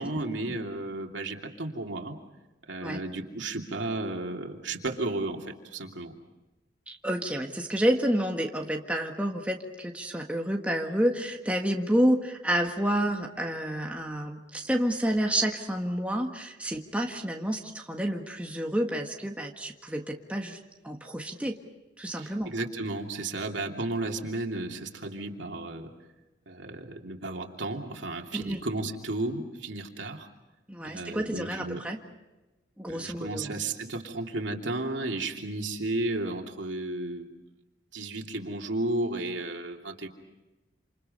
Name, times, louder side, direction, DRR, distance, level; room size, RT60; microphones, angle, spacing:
voice 1, 0.0-2.2 2.7-6.1 22.2-25.9 26.5-30.3 30.8-31.8 32.9-37.3 37.9-40.1, right 2 dB, 90° right, 1 dB, 2.9 m, -33 dB
voice 2, 6.9-20.6 20.8-21.6 22.0-22.5 28.3-28.6 30.7-32.0 32.8-33.6, equal, 5° right, 1 dB, 1.6 m, -29 dB
28.5 x 27.5 x 5.5 m, 1.1 s
head